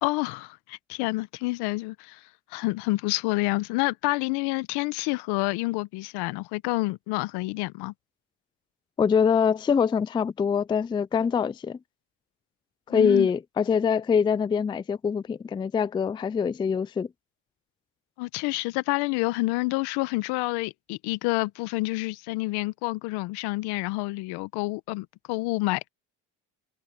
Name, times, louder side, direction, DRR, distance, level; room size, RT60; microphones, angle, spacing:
voice 1, 0.0-2.2 2.5-7.9 12.9-13.3 18.2-25.9, left 22 dB, 80° left, 1.0 m, -28 dB
voice 2, 9.0-11.8 12.9-17.1, left 6 dB, 15° left, 0.3 m, -24 dB
supercardioid pair, 90°, 39 cm